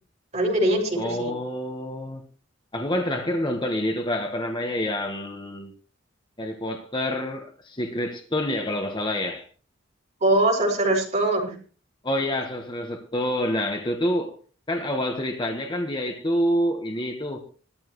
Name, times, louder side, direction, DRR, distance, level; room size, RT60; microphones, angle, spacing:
voice 1, 0.3-1.3 10.2-11.6, right 1 dB, 35° right, 6.8 m, -22 dB
voice 2, 0.9-2.2 2.7-5.7 6.4-9.4 12.0-14.3 14.7-17.4, left 1 dB, 25° left, 1.4 m, -27 dB
20.0 x 14.5 x 3.2 m
head